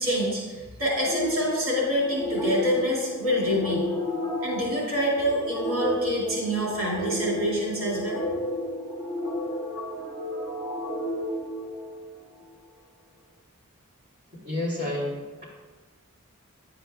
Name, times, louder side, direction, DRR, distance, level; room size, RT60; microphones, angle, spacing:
voice 1, 0.0-3.9 4.4-8.2, equal, 75° right, -5 dB, 2.6 m, -26 dB
sound 1, 1.0-12.3, left 1 dB, 20° left, 2.0 m, -32 dB
voice 2, 14.4-15.4, left 1 dB, 35° right, -9 dB, 2.6 m, -30 dB
9.7 x 8.1 x 2.4 m, 1.2 s
head